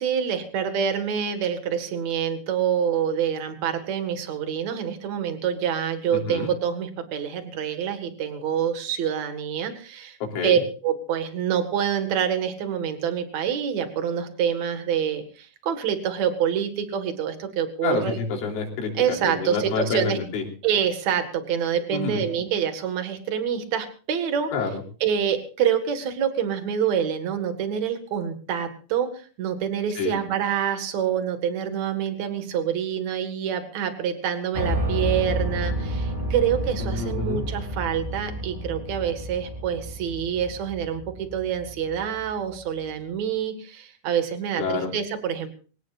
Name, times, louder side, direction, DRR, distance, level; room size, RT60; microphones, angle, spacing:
voice 1, 0.0-10.2 10.4-18.1 18.9-20.2 20.6-24.5 25.0-45.5, right 8 dB, 50° right, 7 dB, 2.3 m, -26 dB
voice 2, 6.1-6.5 10.3-10.6 17.8-18.9 19.3-20.4 21.9-22.3 24.5-24.8 30.0-30.2 36.8-37.4 44.6-44.9, left 5 dB, 80° left, 0 dB, 5.9 m, -28 dB
Piano, 34.5-42.5, right 1 dB, 15° right, 2.8 m, -30 dB
24.0 x 18.0 x 2.6 m, 0.38 s
omnidirectional pair, 5.6 m